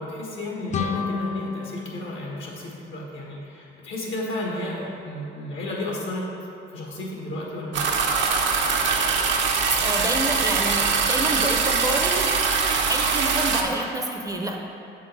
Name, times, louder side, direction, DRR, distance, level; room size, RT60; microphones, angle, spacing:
voice 1, 0.0-6.2 6.7-7.8, left 1 dB, 75° left, -4 dB, 1.4 m, -33 dB
sound 1, 0.7-3.5, left 4 dB, 35° left, 0.4 m, -31 dB
sound 2, 7.7-13.6, right 5 dB, 70° right, 0.7 m, -22 dB
voice 2, 9.8-12.3 12.9-14.6, right 2 dB, 15° right, 1 dB, 0.5 m, -28 dB
7.0 x 3.7 x 4.0 m, 2.9 s
cardioid pair, 90°, 20 cm